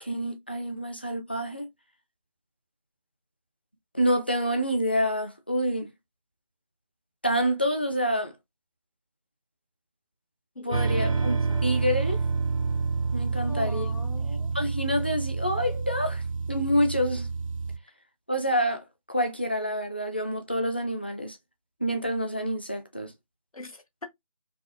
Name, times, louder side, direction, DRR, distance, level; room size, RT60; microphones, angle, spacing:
voice 1, 0.0-1.7 3.9-5.9 7.2-8.3 10.6-11.3 11.6-12.2 13.1-13.9 14.5-16.2 16.5-17.3 18.3-21.4 21.8-23.1, equal, 15° left, 0.4 m, -27 dB
voice 2, 10.5-11.7 13.4-14.5 23.5-24.1, left 2 dB, 75° left, 1.1 m, -42 dB
sound 1, 10.7-17.8, right 4 dB, 65° right, 0.6 m, -28 dB
4.6 x 2.0 x 2.6 m
figure-of-eight pair, 160°, 18 cm